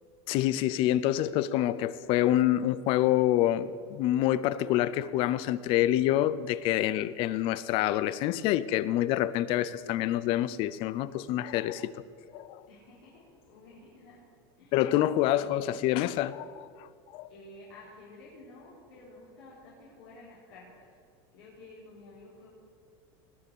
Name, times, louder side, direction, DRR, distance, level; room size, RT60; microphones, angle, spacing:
voice 1, 0.3-12.0 12.3-12.6 14.7-16.9 17.1-17.3, left 13 dB, 45° left, 0.5 m, -27 dB
voice 2, 12.7-14.2 14.6-14.8 17.3-21.0 21.3-22.5, left 2 dB, 75° left, 4.4 m, -52 dB
19.5 x 6.8 x 7.1 m
supercardioid pair, 155°, 13 cm